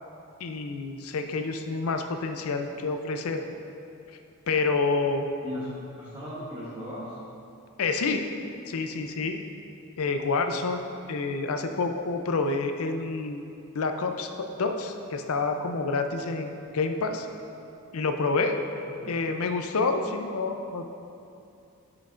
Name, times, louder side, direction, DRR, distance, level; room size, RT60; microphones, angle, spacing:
voice 1, 0.4-3.4 4.5-5.2 7.8-8.2 8.7-9.4 10.0-10.8 11.1-13.4 13.7-17.3 17.9-18.6 19.1-21.0, left 3 dB, 75° left, 6 dB, 0.5 m, -28 dB
voice 2, 5.4-7.2 18.8-19.1, left 1 dB, 20° right, -9 dB, 1.0 m, -38 dB
11.0 x 5.9 x 2.5 m, 2.7 s
head